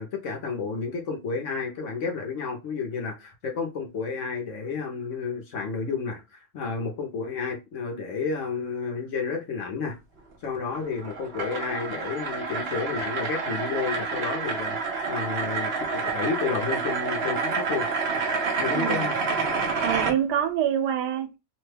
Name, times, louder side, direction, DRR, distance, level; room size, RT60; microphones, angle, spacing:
voice 1, 0.0-10.0 10.4-17.9 18.6-19.2, left 5 dB, 60° left, 0.9 m, -31 dB
sound 1, 10.6-20.1, right 4 dB, 55° right, 0.7 m, -28 dB
voice 2, 18.7-19.1 19.8-21.4, right 9 dB, 90° right, 1.2 m, -26 dB
2.9 x 2.2 x 3.2 m
omnidirectional pair, 1.7 m